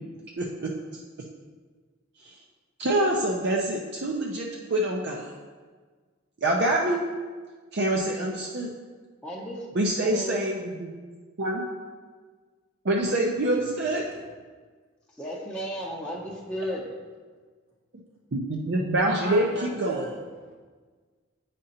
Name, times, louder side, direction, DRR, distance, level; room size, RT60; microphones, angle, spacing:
voice 1, 0.4-1.0 2.2-2.4 2.8-5.3 6.4-7.0 7.7-8.7 9.8-10.9 11.4-11.6 12.8-14.0 18.3-20.0, right 1 dB, 55° right, -2 dB, 0.6 m, -26 dB
voice 2, 9.2-9.7 10.0-10.4 15.1-16.9, equal, 5° left, -8 dB, 0.6 m, -34 dB
voice 3, 19.0-20.6, right 2 dB, 85° right, -5 dB, 1.6 m, -36 dB
8.6 x 5.1 x 2.8 m, 1.5 s
head